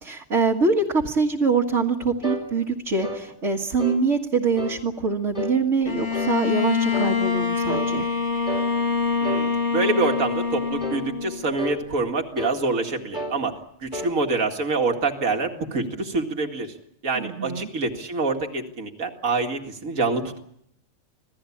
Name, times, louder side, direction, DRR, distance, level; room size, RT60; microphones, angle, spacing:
voice 1, 0.0-8.1 17.2-17.7, right 4 dB, 60° right, -1 dB, 2.0 m, -24 dB
sound 1, 2.2-2.5 3.0-3.2 3.8-4.0 4.6-4.8 5.3-5.6 6.1-6.4 6.9-7.2 7.7-7.9 8.5-8.7 9.2-9.5 10.0-10.2 10.8-11.1 11.6-11.8 12.4-12.6 13.1-13.4 13.9-14.1, left 1 dB, 35° left, 5.1 m, -31 dB
Bowed string instrument, 5.8-11.6, left 5 dB, 55° left, 2.2 m, -25 dB
voice 2, 9.2-13.5 13.8-16.7 17.0-20.4, right 3 dB, 80° right, 4 dB, 2.5 m, -26 dB
27.0 x 17.5 x 8.5 m, 0.73 s
omnidirectional pair, 1.4 m